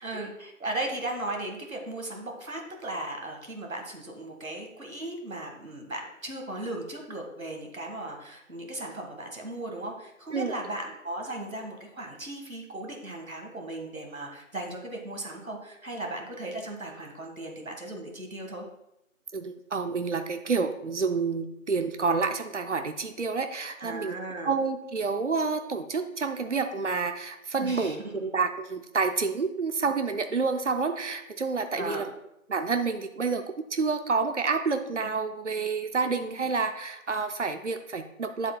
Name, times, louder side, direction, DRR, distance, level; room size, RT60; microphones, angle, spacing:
voice 1, 0.0-18.6 23.8-24.6 27.6-28.3 31.7-32.1, right 1 dB, 75° right, 2 dB, 1.7 m, -37 dB
voice 2, 19.3-24.1 24.4-32.1 32.5-33.4 33.7-38.6, right 4 dB, 60° right, 8 dB, 0.6 m, -29 dB
9.3 x 7.1 x 2.2 m, 0.84 s
figure-of-eight pair, 170°, 42 cm